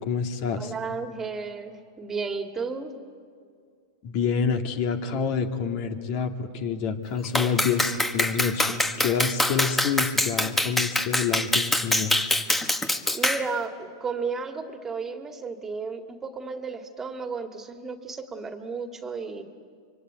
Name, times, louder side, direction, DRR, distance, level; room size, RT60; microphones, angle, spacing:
voice 1, 0.0-0.7 4.0-12.1, left 6 dB, 50° left, 6 dB, 2.3 m, -27 dB
voice 2, 0.6-2.9 13.1-19.4, right 4 dB, 20° right, 6 dB, 2.2 m, -33 dB
Clapping, 7.3-13.5, left 1 dB, 10° left, 1.5 m, -25 dB
25.5 x 24.5 x 9.2 m, 2.2 s
hypercardioid pair, 110°, 2 cm